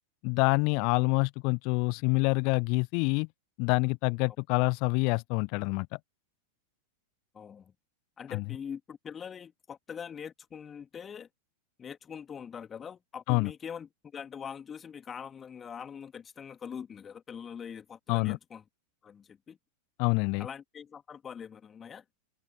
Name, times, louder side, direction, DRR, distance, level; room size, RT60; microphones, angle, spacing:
voice 1, 0.2-3.3 3.6-5.9 8.3-8.4 13.3-13.5 18.1-18.4 20.0-20.5, left 34 dB, 45° left, 0.8 m, -26 dB
voice 2, 7.3-7.7 8.2-11.3 11.8-18.6 19.0-19.6 20.4-22.0, left 7 dB, 20° left, 2.6 m, -43 dB
figure-of-eight pair, 90°, 0 cm